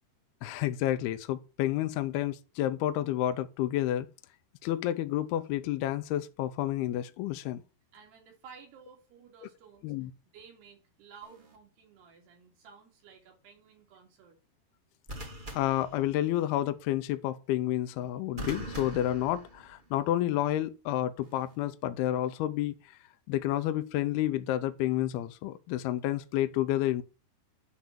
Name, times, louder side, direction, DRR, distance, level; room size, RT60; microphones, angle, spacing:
voice 1, 0.4-4.1 4.6-7.6 9.8-10.1 15.5-23.0 23.3-27.0, left 13 dB, 80° left, 2.5 m, -30 dB
voice 2, 7.9-14.4, right 6 dB, 75° right, 4.5 m, -54 dB
sound 1, 11.2-11.6 15.1-16.6 18.4-20.0 21.2-21.6, right 1 dB, 25° right, 1.0 m, -43 dB
11.5 x 3.9 x 7.3 m
omnidirectional pair, 4.8 m